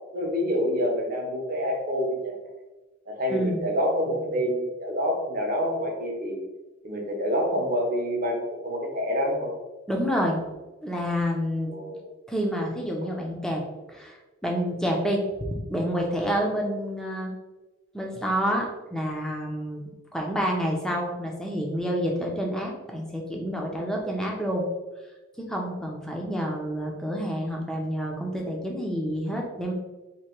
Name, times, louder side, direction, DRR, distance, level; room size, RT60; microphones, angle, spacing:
voice 1, 0.1-2.4 3.1-6.4 6.8-9.5 11.7-12.1, equal, 40° right, 0 dB, 0.8 m, -27 dB
voice 2, 3.3-3.6 9.9-10.4 10.8-11.7 12.3-13.6 13.9-15.2 15.5-17.3 17.9-24.6 25.4-29.7, equal, 5° left, -1 dB, 0.5 m, -28 dB
2.9 x 2.7 x 4.4 m, 1.1 s
head